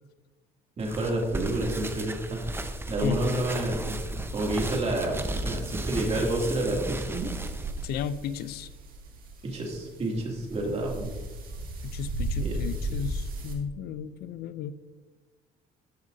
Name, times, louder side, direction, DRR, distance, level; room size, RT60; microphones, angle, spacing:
sound 1, 0.8-7.9, right 1 dB, 15° right, 0.7 m, -34 dB
voice 1, 0.8-2.4 2.9-4.0 4.3-7.3 9.4-11.1 12.3-12.6, right 1 dB, 40° right, -1 dB, 2.6 m, -29 dB
voice 2, 3.0-3.4 7.8-8.7 11.8-14.7, left 8 dB, 70° left, 15 dB, 0.5 m, -34 dB
sound 2, 7.2-13.5, right 2 dB, 60° right, 2.1 m, -36 dB
14.5 x 6.2 x 2.7 m, 1.3 s
cardioid pair, 110°, 17 cm